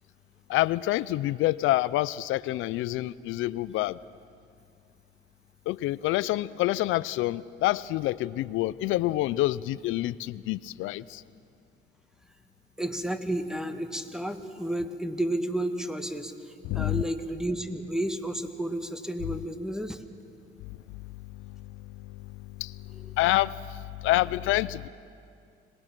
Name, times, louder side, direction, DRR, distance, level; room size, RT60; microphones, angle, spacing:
voice 1, 0.5-4.0 5.7-11.2 16.7-17.0 22.6-22.7 23.2-23.5 24.0-24.9, left 16 dB, 90° left, 18 dB, 0.4 m, -27 dB
voice 2, 12.8-20.0, right 1 dB, 5° right, 8 dB, 1.4 m, -32 dB
25.5 x 18.5 x 6.0 m, 2.4 s
cardioid pair, 90°, 20 cm